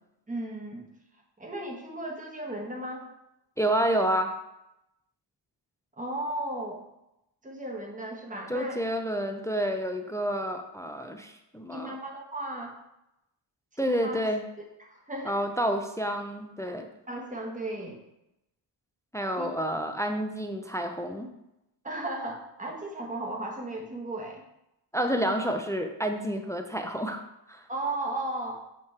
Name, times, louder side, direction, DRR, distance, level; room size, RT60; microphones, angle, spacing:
voice 1, 0.3-0.9 1.4-3.1 6.0-6.9 7.4-8.8 11.7-12.8 13.7-14.2 14.8-15.4 17.1-18.0 19.4-19.5 21.8-24.4 27.7-28.5, right 1 dB, 20° right, 1 dB, 1.1 m, -35 dB
voice 2, 3.6-4.3 8.5-12.0 13.8-14.4 15.3-16.9 19.1-21.3 24.9-27.6, equal, 10° left, 5 dB, 0.4 m, -29 dB
7.5 x 3.0 x 4.4 m, 0.87 s
wide cardioid pair, 120°, 43 cm